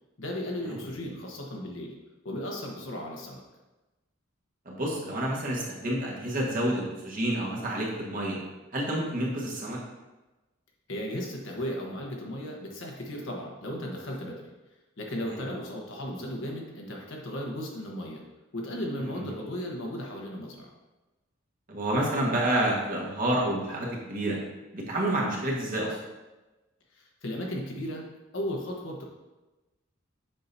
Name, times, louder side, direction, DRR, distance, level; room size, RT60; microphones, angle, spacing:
voice 1, 0.2-1.9 2.2-3.4 10.9-14.5 15.0-18.2 18.5-20.7 26.9-28.0 28.3-29.0, equal, 70° left, 0 dB, 1.2 m, -35 dB
voice 2, 4.6-8.4 8.7-9.8 15.2-15.4 19.0-19.3 21.7-24.4 24.7-26.0, right 1 dB, 45° right, -3 dB, 1.5 m, -29 dB
7.4 x 5.7 x 2.7 m, 1.1 s
head